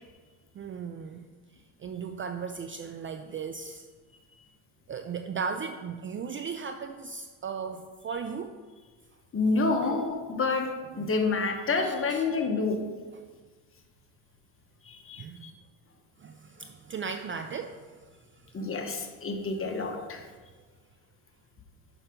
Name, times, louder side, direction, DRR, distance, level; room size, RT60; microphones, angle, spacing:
voice 1, 0.5-1.3 1.5-3.9 4.9-8.5 9.8-10.0 11.0-11.1 11.8-12.2 15.2-15.5 16.2-18.1 18.4-18.7, right 6 dB, 30° right, 7 dB, 0.4 m, -37 dB
voice 2, 9.3-10.7 11.0-12.8 14.8-15.5 18.5-20.2, left 3 dB, 30° left, 3 dB, 1.3 m, -28 dB
5.8 x 5.7 x 5.2 m, 1.4 s
supercardioid pair, 85°, 43 cm